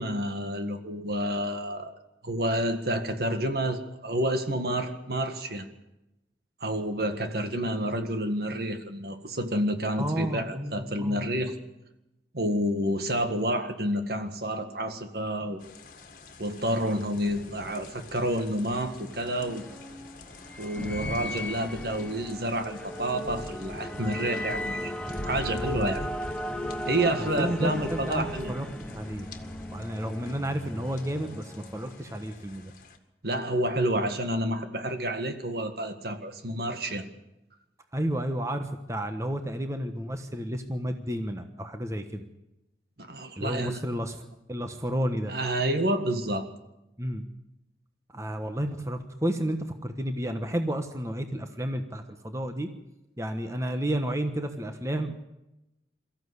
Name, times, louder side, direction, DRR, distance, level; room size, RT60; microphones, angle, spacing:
voice 1, 0.0-1.9 2.2-5.6 6.6-11.6 12.3-15.6 16.4-19.7 20.6-24.9 25.2-26.0 26.9-28.5 33.2-37.1 43.0-43.8 45.3-46.5, right 1 dB, 60° right, 7 dB, 1.8 m, -29 dB
voice 2, 10.0-11.2 25.1-25.9 27.2-29.3 29.7-32.7 37.9-42.2 43.4-45.3 47.0-47.3 48.1-52.7 53.2-55.1, right 1 dB, 15° right, 6 dB, 1.2 m, -32 dB
sound 1, 15.6-33.0, left 1 dB, 50° left, 1.9 m, -43 dB
sound 2, 18.9-32.4, left 1 dB, 5° left, 0.7 m, -37 dB
23.0 x 14.0 x 8.2 m, 0.92 s
head